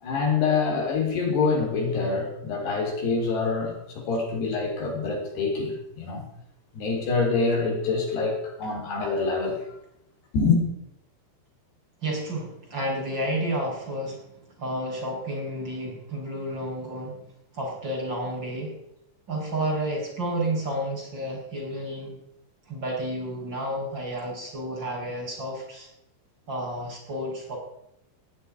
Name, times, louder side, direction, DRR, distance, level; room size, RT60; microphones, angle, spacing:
voice 1, 0.0-6.3 6.7-9.6 10.3-10.6, left 4 dB, 70° left, 1 dB, 5.9 m, -25 dB
voice 2, 12.0-17.2 17.5-18.8 19.3-22.2 22.7-25.9 26.5-27.6, right 1 dB, 25° right, -3 dB, 6.2 m, -31 dB
18.5 x 7.4 x 9.8 m, 0.79 s
omnidirectional pair, 4.9 m